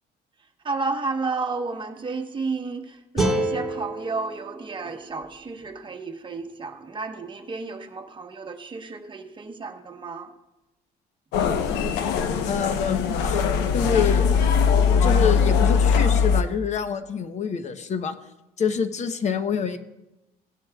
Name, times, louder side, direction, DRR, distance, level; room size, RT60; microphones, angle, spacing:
voice 1, 0.6-10.3, right 4 dB, 30° right, 4 dB, 1.1 m, -32 dB
sound 1, 3.2-6.3, right 1 dB, ahead, 2.7 m, -29 dB
sound 2, 11.3-16.4, left 6 dB, 90° left, 0.9 m, -21 dB
voice 2, 12.5-13.4 13.7-14.3 15.0-18.2 18.6-19.8, left 6 dB, 45° left, 10 dB, 0.8 m, -26 dB
17.5 x 10.5 x 2.3 m, 0.97 s
cardioid pair, 110°, 17 cm